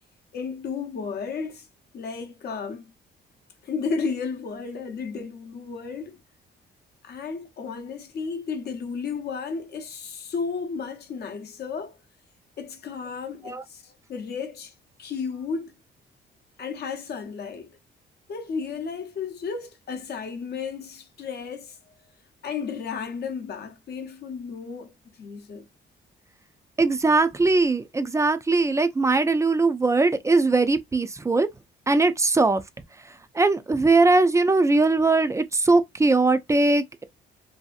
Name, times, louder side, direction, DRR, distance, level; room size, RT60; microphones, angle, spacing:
voice 1, 0.3-1.7 1.9-2.9 3.6-6.2 7.0-12.0 12.6-14.7 15.0-15.7 16.6-17.8 18.3-21.8 22.4-25.7, left 5 dB, 55° left, 0.6 m, -33 dB
voice 2, 26.8-31.5 31.9-32.6 33.3-37.0, right 3 dB, 15° right, 0.4 m, -20 dB
2.7 x 2.4 x 2.4 m
cardioid pair, 90°, 20 cm